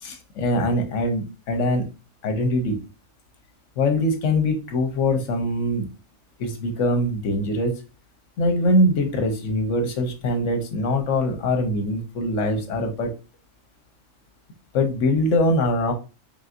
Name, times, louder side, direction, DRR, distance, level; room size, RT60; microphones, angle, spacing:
voice 1, 0.0-1.8 2.2-2.8 3.8-5.9 6.4-7.8 8.4-13.1 14.7-15.9, left 1 dB, 75° left, 5 dB, 1.1 m, -23 dB
4.0 x 3.5 x 2.5 m, 0.30 s
omnidirectional pair, 1.3 m